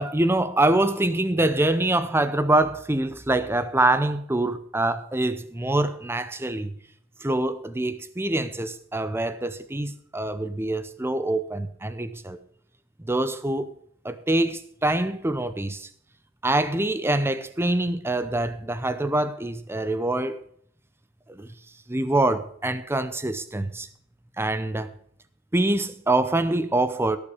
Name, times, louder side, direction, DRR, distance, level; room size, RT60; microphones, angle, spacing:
voice 1, 0.0-6.7 7.2-12.4 13.0-13.7 14.0-15.9 16.4-20.4 21.3-21.5 21.9-23.9 24.4-24.9 25.5-27.2, right 2 dB, 10° right, 0.7 m, -25 dB
17.5 x 7.0 x 5.0 m
head